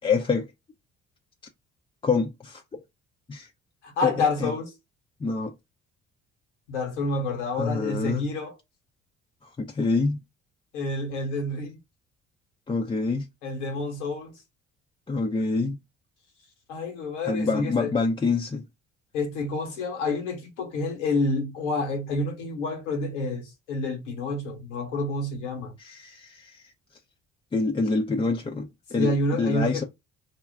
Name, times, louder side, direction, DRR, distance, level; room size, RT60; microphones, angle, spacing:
voice 1, 0.0-0.5 2.0-2.8 3.3-3.5 4.0-4.1 4.4-4.5 5.2-5.5 7.6-8.2 9.4-10.2 12.7-13.3 15.1-15.8 17.3-18.7 25.8-26.7 27.5-29.8, left 4 dB, 15° left, 0.4 m, -26 dB
voice 2, 3.8-4.7 6.7-8.5 10.7-11.8 13.4-14.3 16.7-17.9 19.1-25.7 29.0-29.8, left 2 dB, 85° left, 1.0 m, -28 dB
2.3 x 2.1 x 3.5 m
hypercardioid pair, 50°, 35 cm